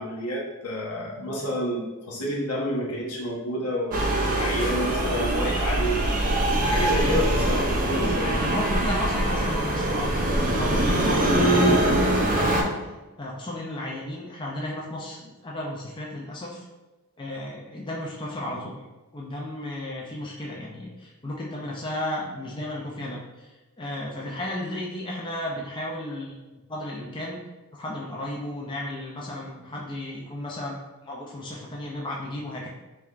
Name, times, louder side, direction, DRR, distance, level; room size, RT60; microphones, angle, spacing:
voice 1, 0.0-6.2 6.6-8.4, equal, 80° left, -3 dB, 0.9 m, -29 dB
sound 1, 3.9-12.6, right 1 dB, 40° right, 0.4 m, -23 dB
voice 2, 8.4-12.7 13.2-16.6 17.2-18.8 19.1-23.5 23.8-26.4 26.7-27.4 27.7-30.8 31.0-32.7, left 1 dB, 20° left, -3 dB, 0.5 m, -34 dB
3.3 x 3.3 x 2.4 m, 1.1 s
head